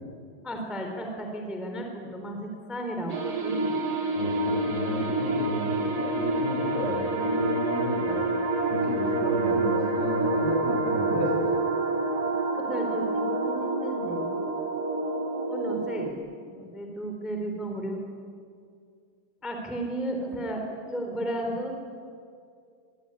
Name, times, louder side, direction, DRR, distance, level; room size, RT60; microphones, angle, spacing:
voice 1, 0.4-3.7 12.6-14.3 15.5-16.1 16.4-18.0 19.4-21.8, right 1 dB, ahead, 3 dB, 2.7 m, -33 dB
sound 1, 3.1-16.1, right 2 dB, 60° right, 1.0 m, -28 dB
voice 2, 4.1-8.2 8.7-11.4, left 1 dB, 55° left, -1 dB, 9.7 m, -31 dB
24.5 x 22.5 x 9.9 m, 2.3 s
omnidirectional pair, 5.3 m